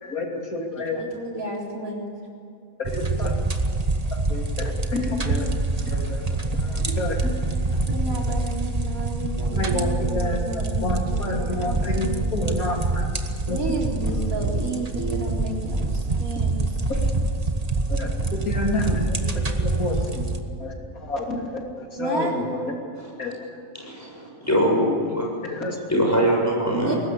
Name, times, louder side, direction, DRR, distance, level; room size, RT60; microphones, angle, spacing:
voice 1, 0.0-1.0 2.8-3.3 4.3-7.4 8.1-8.3 9.5-13.1 13.5-13.8 17.9-18.1 18.5-20.3 20.6-20.7 21.0-22.6 23.2-23.3 25.4-25.8, left 2 dB, 80° left, 1 dB, 3.5 m, -29 dB
voice 2, 0.8-2.1 7.9-12.6 13.5-16.5 18.3-18.4 19.4-20.1 22.0-22.4 26.7-26.9, right 2 dB, 75° right, -2 dB, 4.5 m, -32 dB
sound 1, 2.8-20.4, right 2 dB, 25° right, 1.4 m, -26 dB
voice 3, 23.0-23.3 24.0-24.1 24.4-25.3 25.9-27.0, equal, 10° left, -2 dB, 6.9 m, -22 dB
22.5 x 19.0 x 8.5 m, 2.6 s
omnidirectional pair, 1.5 m